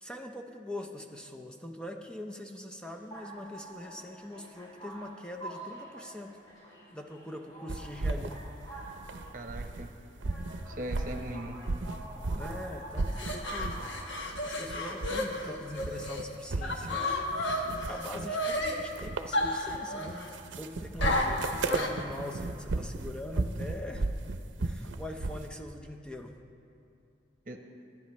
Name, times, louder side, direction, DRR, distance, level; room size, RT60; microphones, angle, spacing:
voice 1, 0.0-6.3 6.9-8.4 12.3-13.8 14.4-20.3 20.5-24.1 24.6-26.3, left 1 dB, 5° left, 2 dB, 0.5 m, -42 dB
sound 1, 2.8-17.7, right 2 dB, 20° left, 3.1 m, -48 dB
sound 2, 7.7-9.9 10.2-12.6 12.9-13.9 14.2-15.4 15.7-25.5, right 2 dB, 90° right, 0.6 m, -35 dB
voice 2, 9.3-9.9 10.7-11.6 27.5-27.6, right 1 dB, 45° right, 5 dB, 1.0 m, -39 dB
sound 3, 13.0-16.2 16.6-18.8 19.3-20.3 21.0-22.0, left 1 dB, 85° left, 1.4 m, -32 dB
22.5 x 10.5 x 3.2 m, 2.6 s
head